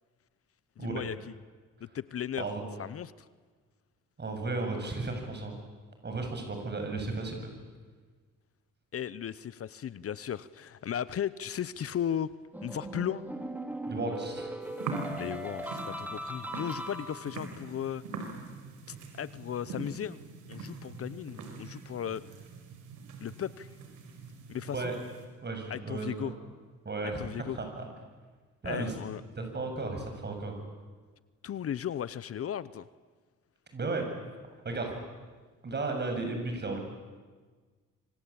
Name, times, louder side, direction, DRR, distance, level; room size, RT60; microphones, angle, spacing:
voice 1, 0.8-1.3 1.8-2.5 2.8-3.3 8.9-12.3 12.6-13.2 15.2-18.0 18.9-20.2 20.5-22.2 23.2-23.7 24.5-24.9 25.7-26.3 27.2-27.6 28.6-29.2 31.4-32.9, left 9 dB, 50° left, 17 dB, 0.8 m, -36 dB
voice 2, 4.2-5.6 6.0-7.5 13.9-14.5 24.7-25.0 25.4-26.3 26.8-27.9 28.6-28.9 29.4-30.5 33.7-34.1 34.6-34.9 35.6-36.8, right 3 dB, 35° right, 4 dB, 7.5 m, -34 dB
sound 1, 12.5-17.5, right 1 dB, 5° right, 3.6 m, -39 dB
sound 2, 14.6-25.3, right 4 dB, 85° right, 5.3 m, -43 dB
26.0 x 25.5 x 8.7 m, 1.4 s
cardioid pair, 90°, 30 cm